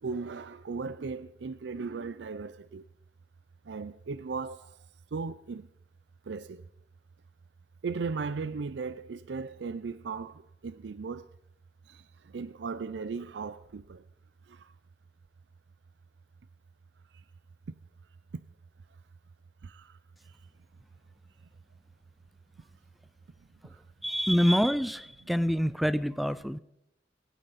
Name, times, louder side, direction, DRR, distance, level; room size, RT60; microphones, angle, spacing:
voice 1, 0.0-2.8 3.7-4.8 5.1-5.7 6.3-6.6 7.8-11.3 11.9-14.0 14.5-14.7 19.6-20.0, right 4 dB, 70° right, 0.5 m, -37 dB
voice 2, 24.0-26.6, equal, ahead, 0.4 m, -26 dB
24.5 x 9.2 x 4.1 m
head